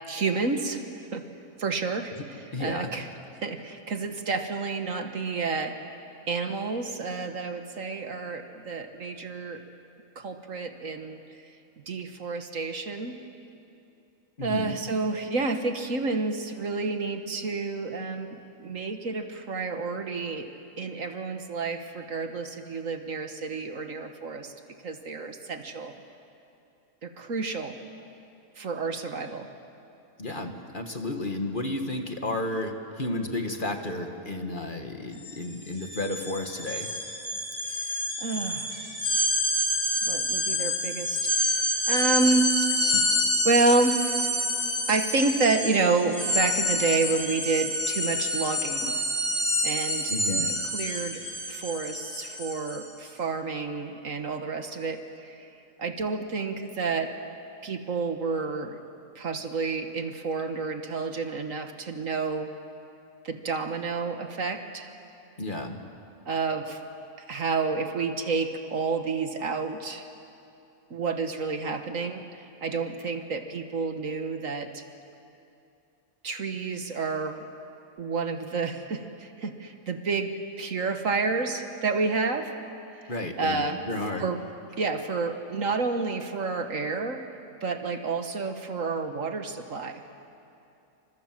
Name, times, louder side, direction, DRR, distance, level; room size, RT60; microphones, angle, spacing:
voice 1, 0.1-0.8 1.1-1.2 1.6-3.1 3.4-5.8 6.3-9.6 10.2-11.2 11.9-13.2 14.4-20.5 20.8-24.5 24.8-25.9 27.0-27.7 28.6-29.5 37.9-38.7 40.0-41.2 41.9-42.5 43.4-44.0 44.9-49.0 49.6-51.2 51.5-55.5 55.8-57.1 57.6-58.8 59.2-62.5 63.2-64.9 66.3-66.8 67.2-70.1 70.9-72.3 72.6-74.8 76.2-77.4 78.0-82.6 82.9-83.0 83.4-83.8 84.2-84.4 84.8-87.2 87.6-90.0, right 4 dB, 60° right, 7 dB, 1.8 m, -29 dB
voice 2, 2.5-2.9 14.4-14.8 30.2-36.9 42.9-43.1 50.1-50.6 65.4-65.8 83.1-84.2, left 2 dB, 35° left, 5 dB, 1.8 m, -32 dB
sound 1, 35.2-35.3 35.6-52.9, left 1 dB, 10° left, 3.4 m, -28 dB
29.0 x 25.5 x 7.6 m, 2.7 s
omnidirectional pair, 1.5 m